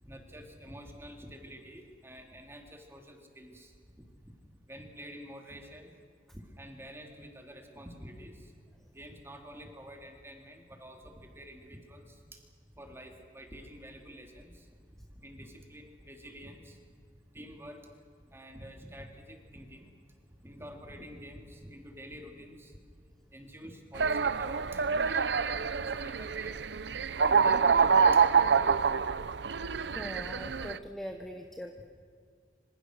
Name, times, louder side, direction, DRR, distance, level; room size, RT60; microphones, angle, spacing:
voice 1, 0.0-4.0 4.7-6.0 6.3-8.5 8.9-12.4 12.7-14.7 14.9-16.8 17.3-17.9 18.3-19.9 20.4-22.8 23.3-26.6 27.2-28.8 30.6-30.9, equal, 15° right, 3 dB, 3.1 m, -48 dB
sound 1, 23.9-30.8, right 5 dB, 85° right, 0.7 m, -26 dB
voice 2, 29.9-31.8, equal, ahead, 4 dB, 1.2 m, -41 dB
26.5 x 26.0 x 6.6 m, 2.1 s
head